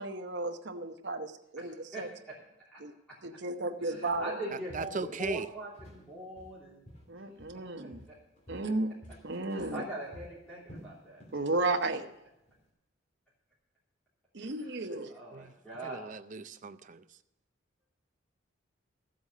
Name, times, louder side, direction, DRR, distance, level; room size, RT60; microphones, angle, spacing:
voice 1, 0.0-2.1 2.8-2.9 3.2-4.4 7.1-8.0 8.5-8.9 9.2-9.8 11.3-12.1 14.3-15.1, right 2 dB, 55° right, 6 dB, 0.9 m, -33 dB
voice 2, 1.6-2.0 2.6-2.8 3.8-6.8 7.5-8.2 9.5-11.2 15.1-16.1, right 1 dB, 5° left, -8 dB, 3.0 m, -42 dB
Walk footsteps, 4.1-4.3 4.7-6.1 6.4-7.7 7.9-11.4 11.7-12.0 12.5-12.6, equal, 35° left, 2.7 m, -52 dB
voice 3, 4.5-5.5 15.3-15.5 15.8-17.2, right 4 dB, 35° right, 11 dB, 0.5 m, -38 dB
14.0 x 7.8 x 6.7 m, 0.87 s
head